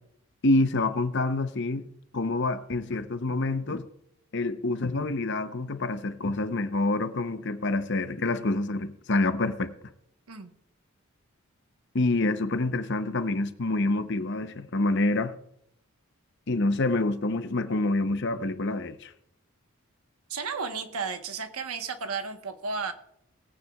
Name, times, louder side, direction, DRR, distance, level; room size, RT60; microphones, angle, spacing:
voice 1, 0.4-1.9 2.1-3.9 4.3-9.7 11.9-15.3 16.5-19.1, left 2 dB, 55° left, 0.8 m, -27 dB
voice 2, 20.3-22.9, right 5 dB, 85° right, 1.2 m, -33 dB
19.5 x 9.3 x 2.3 m
head